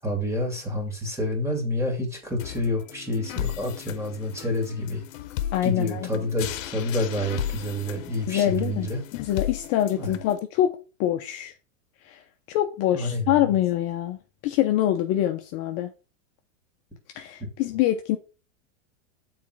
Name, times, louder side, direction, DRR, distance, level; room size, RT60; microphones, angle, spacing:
voice 1, 0.0-5.0 5.6-9.0 10.0-10.2 12.9-13.3, left 1 dB, 5° right, 2.4 m, -28 dB
sound 1, 2.4-10.4, left 11 dB, 75° left, 0.9 m, -36 dB
voice 2, 5.5-6.2 8.3-10.7 11.0-11.5 12.1-12.2 12.5-15.9 17.2-18.2, left 12 dB, 40° left, 0.7 m, -25 dB
6.6 x 4.2 x 4.7 m
hypercardioid pair, 130°, 40 cm